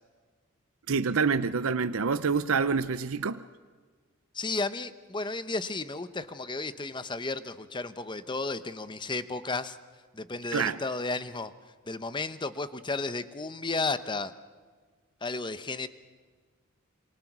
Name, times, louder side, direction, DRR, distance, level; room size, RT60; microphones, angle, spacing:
voice 1, 0.9-3.4 10.5-10.8, right 5 dB, 70° right, 12 dB, 0.6 m, -27 dB
voice 2, 4.3-9.8 10.1-11.5 11.9-14.3 15.2-15.9, left 3 dB, 20° left, 12 dB, 0.9 m, -33 dB
27.0 x 24.5 x 6.1 m, 1.5 s
head